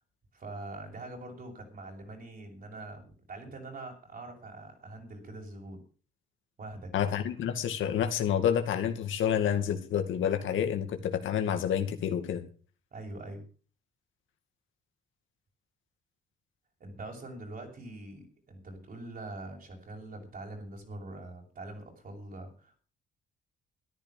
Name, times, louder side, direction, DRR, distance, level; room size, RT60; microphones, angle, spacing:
voice 1, 0.3-5.8 6.6-7.1 12.9-13.4 16.8-22.8, right 2 dB, 45° right, 1 dB, 7.0 m, -44 dB
voice 2, 6.9-12.4, left 9 dB, 75° left, 6 dB, 2.4 m, -29 dB
13.5 x 11.0 x 6.8 m, 0.40 s
cardioid pair, 90°, 20 cm